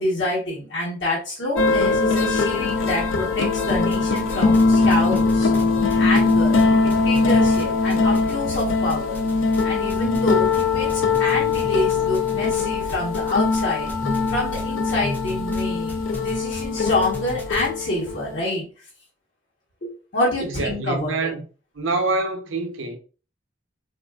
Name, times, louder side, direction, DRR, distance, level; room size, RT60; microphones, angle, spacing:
voice 1, 0.0-5.5 6.0-6.6 6.8-9.2 9.6-13.9 14.3-18.9 19.8-21.3, left 1 dB, 65° left, 1.0 m, -27 dB
sound 1, 1.6-18.4, left 4 dB, 85° left, 0.4 m, -21 dB
sound 2, 3.9-4.6 4.9-8.6 8.9-9.6 9.9-17.7, left 2 dB, 10° left, 0.4 m, -36 dB
voice 2, 20.4-21.4 21.7-23.0, right 2 dB, 85° right, 0.6 m, -26 dB
3.2 x 2.5 x 2.2 m
head